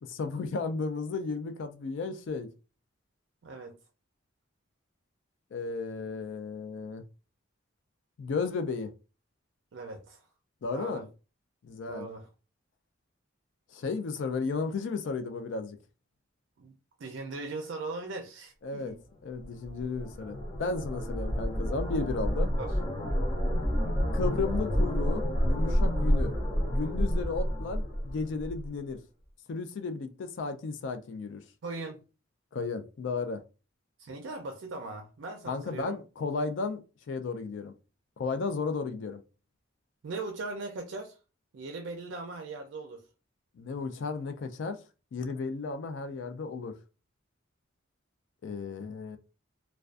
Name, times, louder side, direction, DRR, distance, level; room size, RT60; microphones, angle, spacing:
voice 1, 0.0-2.5 5.5-7.0 8.2-8.9 10.6-11.1 11.6-12.1 13.7-15.8 18.6-19.0 19.2-22.5 24.1-26.4 26.6-29.0 29.5-31.4 32.5-33.4 35.5-37.7 38.2-39.2 43.6-44.8 45.1-46.7 48.4-49.2, left 4 dB, 65° left, 0.3 m, -34 dB
voice 2, 3.4-3.8 9.7-10.2 10.7-11.0 11.9-12.3 16.6-16.7 17.0-19.0 22.6-22.7 31.6-32.0 34.0-36.0 40.0-41.2 41.5-43.0, right 3 dB, 65° right, 0.4 m, -39 dB
sound 1, 19.4-28.7, equal, 30° left, 0.8 m, -29 dB
2.3 x 2.2 x 2.4 m
head